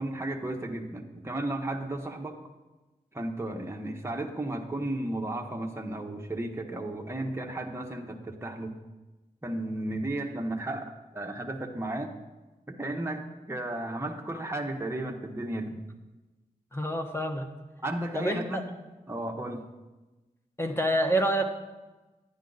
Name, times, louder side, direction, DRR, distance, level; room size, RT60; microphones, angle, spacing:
voice 1, 0.0-2.4 3.1-8.8 9.4-10.8 11.1-12.1 12.7-15.8 17.8-18.6 19.1-19.7, right 1 dB, 15° right, 1 dB, 1.1 m, -34 dB
voice 2, 16.7-17.5 18.1-18.6 20.6-21.5, right 1 dB, 15° left, 4 dB, 1.2 m, -27 dB
11.0 x 9.2 x 4.0 m, 1.1 s
cardioid pair, 55°, 16 cm